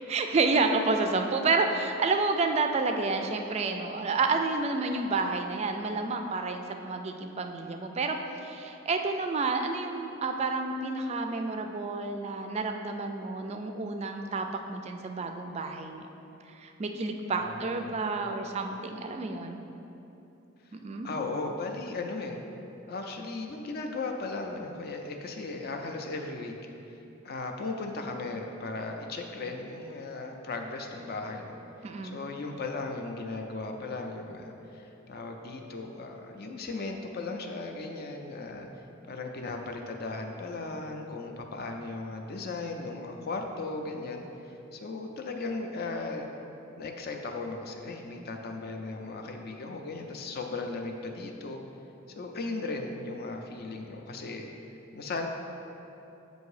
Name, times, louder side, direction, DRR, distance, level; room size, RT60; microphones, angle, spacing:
voice 1, 0.1-16.0 16.5-19.6 20.7-21.1 31.8-32.2, right 3 dB, 30° right, 5 dB, 0.3 m, -30 dB
voice 2, 17.4-18.0 20.6-20.7 21.0-22.4 22.9-26.5 27.2-31.6 32.0-38.7 39.1-46.3 46.8-51.6 52.1-54.5 54.9-55.3, left 3 dB, 50° left, 3 dB, 0.5 m, -36 dB
7.8 x 2.6 x 4.8 m, 2.9 s
head